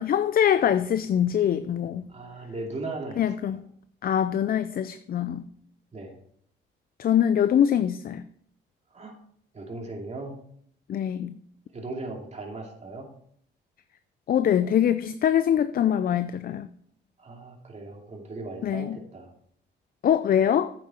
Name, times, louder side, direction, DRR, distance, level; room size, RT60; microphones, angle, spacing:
voice 1, 0.0-2.1 3.2-3.6 4.0-5.5 7.0-8.2 10.9-11.4 14.3-16.7 18.6-19.0 20.0-20.7, left 9 dB, 50° left, 13 dB, 0.4 m, -23 dB
voice 2, 2.1-3.6 5.9-6.1 8.9-9.1 9.5-10.3 11.7-13.1 17.2-19.3, right 2 dB, 35° right, 1 dB, 2.6 m, -38 dB
9.3 x 7.6 x 4.4 m, 0.66 s
cardioid pair, 90°, 20 cm